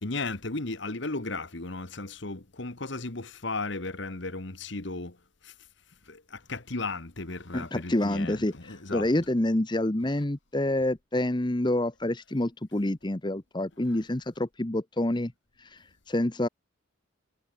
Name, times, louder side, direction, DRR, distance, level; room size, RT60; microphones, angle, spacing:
voice 1, 0.0-5.2 5.4-5.5 6.1-9.1 13.9-14.0, left 3 dB, 60° left, 1.7 m, -35 dB
voice 2, 7.5-15.3 15.6-16.5, left 1 dB, 20° left, 0.9 m, -28 dB
head